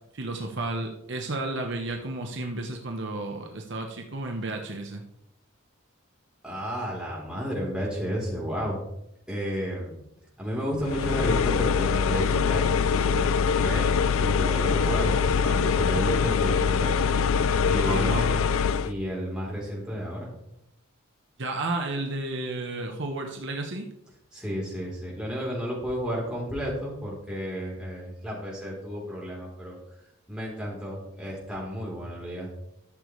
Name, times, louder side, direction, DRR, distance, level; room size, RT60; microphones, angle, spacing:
voice 1, 0.1-5.0 17.7-18.4 21.4-23.9, right 2 dB, 60° right, 3 dB, 1.0 m, -32 dB
voice 2, 6.4-8.8 9.3-9.9 10.4-13.9 14.2-17.1 17.6-18.5 18.8-20.3 24.3-29.8 30.3-32.5, equal, 5° right, -5 dB, 3.5 m, -32 dB
sound 1, 10.8-18.9, left 6 dB, 80° left, 0.4 m, -23 dB
13.0 x 6.9 x 3.2 m, 0.80 s
head